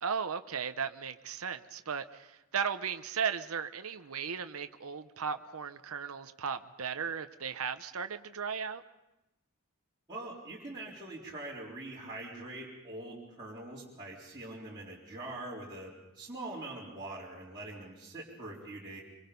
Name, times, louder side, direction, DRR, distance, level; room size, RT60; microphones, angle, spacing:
voice 1, 0.0-8.8, right 6 dB, 70° right, 9 dB, 0.8 m, -36 dB
voice 2, 10.1-19.0, right 2 dB, 20° right, -8 dB, 3.9 m, -43 dB
25.5 x 24.0 x 5.3 m, 0.93 s
head